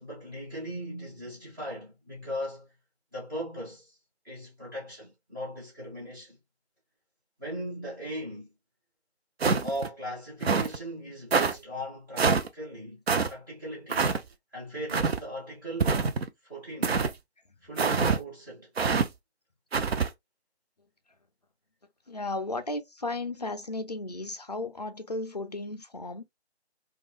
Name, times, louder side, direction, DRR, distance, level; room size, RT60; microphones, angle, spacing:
voice 1, 0.0-2.7 3.1-4.0 4.2-6.4 7.4-8.5 9.6-13.0 13.3-14.2 14.5-16.1 16.5-17.0 17.6-18.7, equal, 20° right, 1.0 m, -38 dB
sound 1, 9.4-9.9 10.4-10.8 11.3-11.5 12.2-12.5 13.1-13.3 13.9-14.2 14.9-15.2 15.8-16.3 16.8-17.1 17.8-18.2 18.8-19.1 19.7-20.1, right 5 dB, 65° right, 0.6 m, -25 dB
voice 2, 22.1-26.2, left 2 dB, 40° left, 0.4 m, -34 dB
3.0 x 2.3 x 2.3 m
figure-of-eight pair, 155°, 33 cm